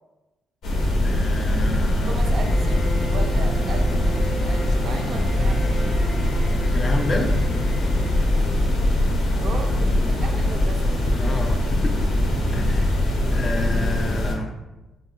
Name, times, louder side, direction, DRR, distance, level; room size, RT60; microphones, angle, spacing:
sound 1, 0.6-14.3, left 1 dB, 80° left, 0.6 m, -21 dB
voice 1, 1.0-2.2 6.7-7.4 11.1-11.9 12.5-12.9 13.3-14.5, left 2 dB, 35° left, 3 dB, 0.3 m, -30 dB
voice 2, 2.0-5.8 9.4-11.1, right 4 dB, 60° right, 4 dB, 0.3 m, -36 dB
Bowed string instrument, 2.2-9.2, equal, 5° right, 0.7 m, -37 dB
4.0 x 2.1 x 2.4 m, 1.1 s
cardioid pair, 90°, 0 cm